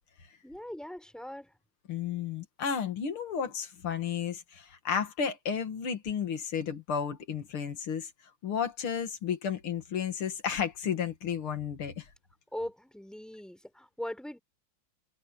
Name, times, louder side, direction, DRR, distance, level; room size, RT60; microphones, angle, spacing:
voice 1, 0.4-1.5 12.5-14.4, left 1 dB, ahead, 4.8 m, -40 dB
voice 2, 1.9-8.1 8.4-12.1, left 7 dB, 90° left, 2.8 m, -32 dB
omnidirectional pair, 2.3 m